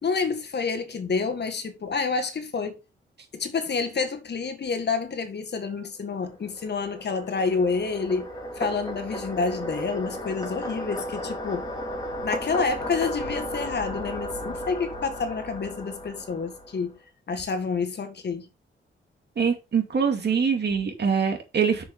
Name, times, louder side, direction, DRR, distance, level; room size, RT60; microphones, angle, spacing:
voice 1, 0.0-2.8 3.3-8.3 8.6-11.7 12.2-17.0 17.3-18.5, left 4 dB, 55° left, 1.9 m, -28 dB
sound 1, 6.2-16.9, equal, 20° left, 3.7 m, -35 dB
voice 2, 19.4-21.9, right 6 dB, 55° right, 2.5 m, -24 dB
7.3 x 6.6 x 3.8 m
cardioid pair, 95°, 21 cm